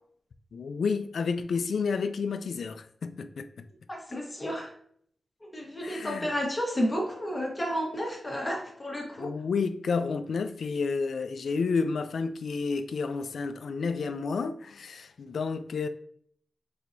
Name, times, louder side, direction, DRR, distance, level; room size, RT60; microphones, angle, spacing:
voice 1, 0.5-3.7 5.8-6.3 9.2-15.9, left 5 dB, 80° left, 0.3 m, -30 dB
voice 2, 3.9-4.7 5.5-9.3, equal, 25° left, 1.1 m, -31 dB
4.5 x 4.1 x 2.6 m
wide cardioid pair, 95°, 0 cm